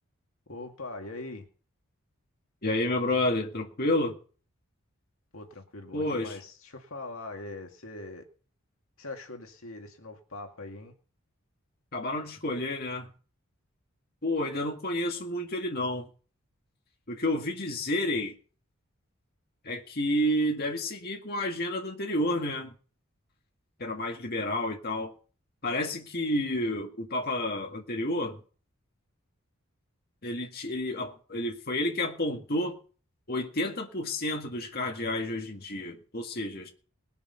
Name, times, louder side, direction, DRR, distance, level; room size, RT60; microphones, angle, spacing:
voice 1, 0.5-1.5 5.3-8.2 9.0-10.9, left 2 dB, 75° left, 2.2 m, -42 dB
voice 2, 2.6-4.1 5.9-6.4 11.9-13.1 14.2-16.1 17.1-18.3 19.6-22.7 23.8-25.1 25.6-28.4 30.2-32.7 33.3-36.7, left 1 dB, 45° left, 1.9 m, -30 dB
20.5 x 7.0 x 5.7 m
head